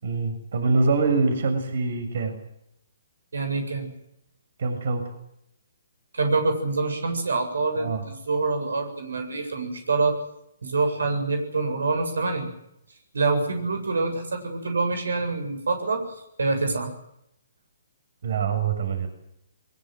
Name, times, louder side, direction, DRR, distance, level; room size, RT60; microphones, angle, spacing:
voice 1, 0.0-2.3 4.6-5.0 7.8-8.0 18.2-19.1, right 4 dB, 60° right, 8 dB, 7.1 m, -24 dB
voice 2, 3.3-3.9 6.1-10.2 10.6-12.5 13.1-16.0 16.4-16.9, right 3 dB, 90° right, 7 dB, 7.6 m, -26 dB
22.5 x 22.0 x 7.8 m, 0.78 s
hypercardioid pair, 155°, 0 cm